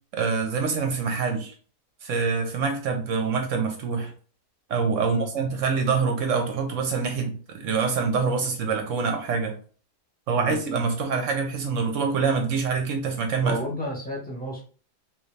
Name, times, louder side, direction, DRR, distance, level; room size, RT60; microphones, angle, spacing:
voice 1, 0.1-1.5 2.0-4.1 4.7-9.5 10.3-13.6, right 5 dB, 60° right, 4 dB, 0.9 m, -25 dB
voice 2, 13.4-14.6, equal, 5° left, -3 dB, 1.0 m, -32 dB
3.2 x 2.6 x 3.2 m, 0.41 s
omnidirectional pair, 1.7 m